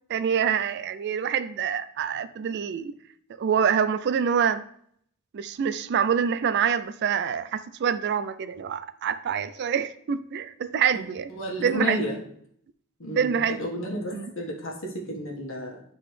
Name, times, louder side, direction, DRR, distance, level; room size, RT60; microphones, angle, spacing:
voice 1, 0.1-2.9 3.4-4.6 5.3-11.3 11.6-12.0 13.2-13.6 14.1-14.3, right 7 dB, 50° right, 0.3 m, -26 dB
voice 2, 11.3-12.2 13.0-15.8, equal, 60° left, 1.4 m, -32 dB
10.0 x 3.9 x 3.2 m
head